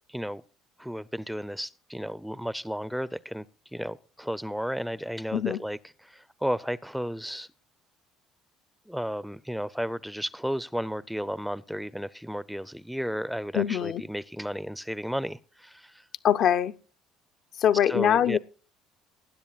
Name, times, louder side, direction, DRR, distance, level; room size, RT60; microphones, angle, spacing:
voice 1, 0.1-0.4 0.8-3.4 3.7-7.5 8.9-16.0 17.9-18.4, equal, ahead, 0.4 m, -33 dB
voice 2, 13.5-14.0 16.2-16.7 17.6-18.4, left 9 dB, 60° left, 0.5 m, -23 dB
19.5 x 10.0 x 2.3 m
supercardioid pair, 80°, 0 cm